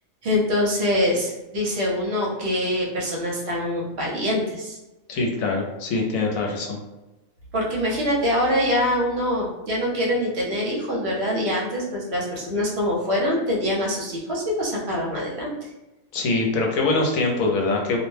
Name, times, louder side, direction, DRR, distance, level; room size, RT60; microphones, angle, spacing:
voice 1, 0.2-4.8 7.5-15.5, left 1 dB, 55° right, -4 dB, 0.9 m, -24 dB
voice 2, 5.1-6.8 16.1-18.0, left 3 dB, 80° left, 0 dB, 1.0 m, -23 dB
2.5 x 2.1 x 3.1 m, 1.0 s
omnidirectional pair, 1.4 m